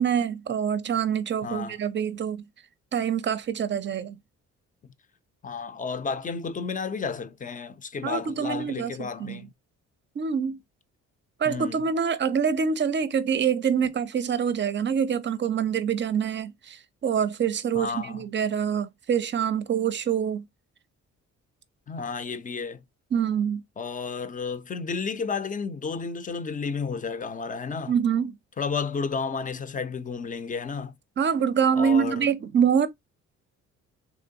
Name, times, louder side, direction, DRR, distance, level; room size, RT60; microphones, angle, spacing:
voice 1, 0.0-2.4 2.9-4.2 8.0-9.5 10.2-10.6 11.4-20.4 23.1-23.6 27.9-28.4 31.2-32.9, right 7 dB, 40° right, 0.5 m, -25 dB
voice 2, 1.4-1.8 4.8-4.9 5.4-9.5 11.4-11.8 17.7-18.2 21.9-22.8 23.8-27.9 28.6-31.0 31.8-32.3, left 5 dB, 25° left, 0.5 m, -32 dB
3.7 x 3.0 x 2.7 m
cardioid pair, 90°, 30 cm